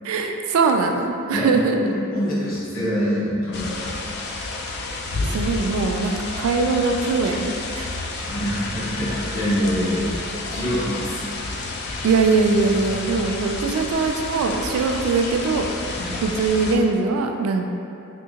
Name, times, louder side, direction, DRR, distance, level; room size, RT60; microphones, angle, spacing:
voice 1, 0.0-1.8 4.7-4.8 5.2-7.9 12.0-15.7 16.2-17.7, right 4 dB, 85° right, 4 dB, 0.3 m, -21 dB
voice 2, 1.3-3.8 8.2-10.1 10.5-11.2 16.0-16.2, equal, 65° left, -9 dB, 1.3 m, -25 dB
sound 1, 3.5-16.8, left 2 dB, 50° left, 0.3 m, -30 dB
3.5 x 2.8 x 2.8 m, 2.7 s
head